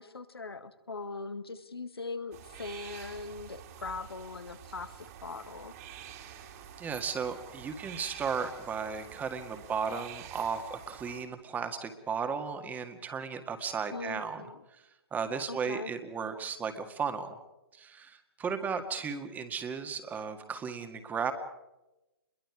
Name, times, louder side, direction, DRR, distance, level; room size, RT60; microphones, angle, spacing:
voice 1, 0.0-5.7 13.9-14.6 15.5-15.9, left 3 dB, 85° left, 10 dB, 1.9 m, -41 dB
sound 1, 2.3-11.2, right 9 dB, 40° right, 2.9 m, -48 dB
voice 2, 6.8-14.5 14.7-14.8 15.1-17.4 17.7-21.3, right 6 dB, 15° right, 7 dB, 1.9 m, -35 dB
28.5 x 22.5 x 4.9 m, 0.98 s
figure-of-eight pair, 130°, 13 cm